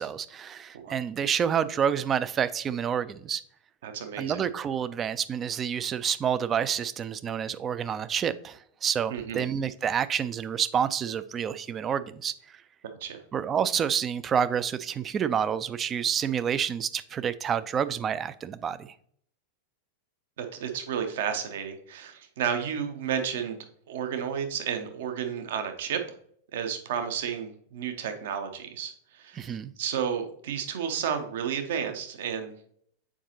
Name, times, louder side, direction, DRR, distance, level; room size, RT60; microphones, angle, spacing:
voice 1, 0.0-3.4 4.2-12.3 13.3-18.9 29.4-29.7, right 8 dB, 25° right, 14 dB, 0.3 m, -28 dB
voice 2, 3.8-4.4 9.1-9.5 13.0-13.2 20.4-23.6 23.9-26.0 26.5-32.5, right 8 dB, 55° right, 7 dB, 0.9 m, -32 dB
7.2 x 4.9 x 2.8 m, 0.63 s
figure-of-eight pair, 90°, 0 cm